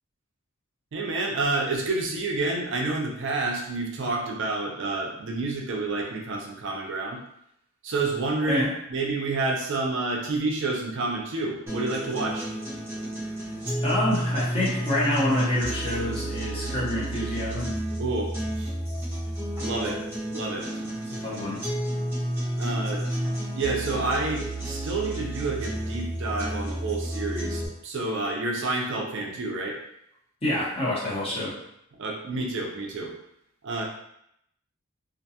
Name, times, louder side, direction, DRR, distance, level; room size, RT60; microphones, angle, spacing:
voice 1, 0.9-7.2 7.8-8.6 8.9-12.5 18.0-18.7 19.6-20.0 20.3-20.7 22.6-23.1 23.5-29.8 32.0-33.2 33.6-33.8, right 3 dB, 55° right, 0 dB, 0.4 m, -29 dB
sound 1, 11.7-27.7, right 1 dB, 10° right, 0.7 m, -31 dB
voice 2, 13.8-17.7 20.8-21.6 30.4-31.5, left 1 dB, 25° left, -7 dB, 0.8 m, -27 dB
2.4 x 2.2 x 2.7 m, 0.76 s
head